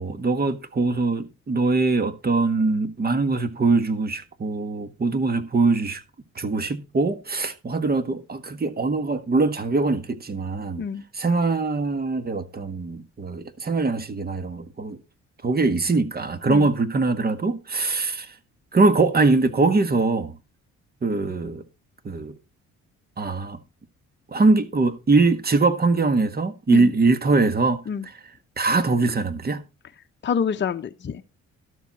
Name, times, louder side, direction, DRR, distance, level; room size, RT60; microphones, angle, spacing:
voice 1, 0.0-6.0 6.3-10.8 11.1-15.0 15.4-18.3 18.7-20.3 21.0-21.6 22.0-22.3 23.2-23.6 24.3-27.8 28.6-29.7, right 3 dB, 30° right, 1.6 m, -22 dB
voice 2, 30.2-31.2, left 6 dB, 40° left, 0.8 m, -26 dB
12.5 x 7.2 x 4.2 m
cardioid pair, 90°, 30 cm